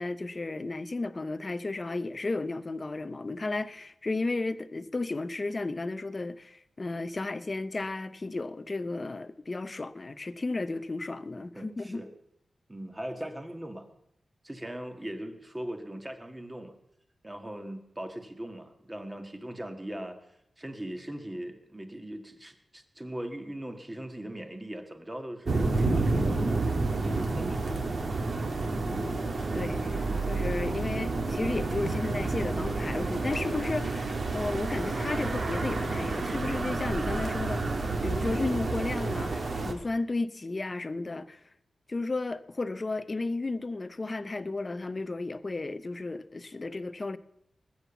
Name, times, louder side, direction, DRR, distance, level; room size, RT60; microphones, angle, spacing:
voice 1, 0.0-12.0 28.8-37.6 38.0-41.4 41.9-47.2, left 3 dB, 25° left, 0.7 m, -33 dB
voice 2, 11.5-12.1 12.7-13.9 14.4-16.7 17.2-20.2 20.6-27.8, right 1 dB, 15° right, 1.6 m, -40 dB
sound 1, 25.5-39.7, right 3 dB, 45° right, 1.8 m, -30 dB
20.0 x 8.7 x 7.1 m
wide cardioid pair, 155°, 0 cm